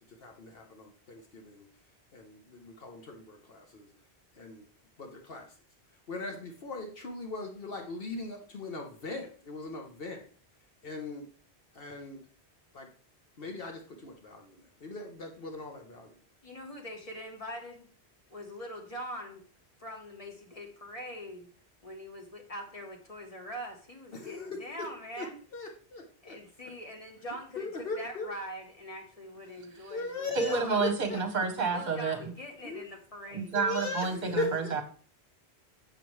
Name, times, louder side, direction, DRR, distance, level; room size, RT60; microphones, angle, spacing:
voice 1, 0.2-1.7 2.1-3.9 4.3-4.7 5.0-5.5 6.1-10.2 10.8-11.2 11.7-12.2 12.7-12.9 13.4-16.1 24.1-24.6 25.2-25.3 25.5-26.4 27.6-28.3 29.9-31.2 32.6-32.8 33.5-34.8, left 3 dB, 60° left, 2 dB, 1.1 m, -39 dB
voice 2, 16.4-17.9 18.3-19.4 19.8-21.5 21.8-25.4 26.2-27.7 28.0-30.8 31.7-33.6, equal, 35° left, 2 dB, 1.3 m, -43 dB
voice 3, 30.3-32.3 33.3-34.8, right 4 dB, 45° right, 5 dB, 1.1 m, -30 dB
7.1 x 5.9 x 3.1 m, 0.43 s
omnidirectional pair, 1.1 m